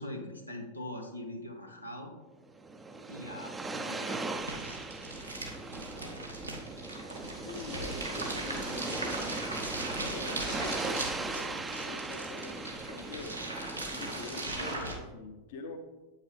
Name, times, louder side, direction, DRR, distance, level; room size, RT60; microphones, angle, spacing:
voice 1, 0.0-2.1 3.1-4.4 5.0-6.1 9.9-10.1, left 1 dB, 85° left, 2 dB, 0.8 m, -43 dB
sound 1, 2.5-14.7, right 3 dB, 15° right, 0.4 m, -39 dB
sound 2, 4.4-15.0, right 2 dB, 85° right, 1.1 m, -39 dB
voice 2, 7.4-13.4 13.9-15.8, left 4 dB, 50° left, 4 dB, 0.7 m, -45 dB
7.8 x 5.6 x 3.3 m, 1.2 s
figure-of-eight pair, 90°, 0 cm